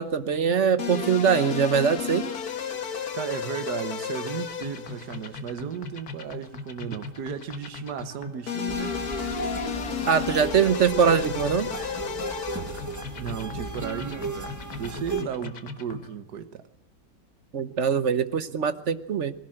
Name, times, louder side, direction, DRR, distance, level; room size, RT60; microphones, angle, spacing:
voice 1, 0.0-2.3 10.1-11.7 17.5-19.3, right 6 dB, 50° right, 1.1 m, -22 dB
sound 1, 0.8-16.1, left 7 dB, 60° left, 1.9 m, -34 dB
voice 2, 3.1-9.0 13.1-16.6, right 8 dB, 70° right, 1.7 m, -35 dB
sound 2, 8.7-15.2, right 2 dB, 10° right, 1.9 m, -35 dB
20.5 x 17.0 x 7.8 m
omnidirectional pair, 1.9 m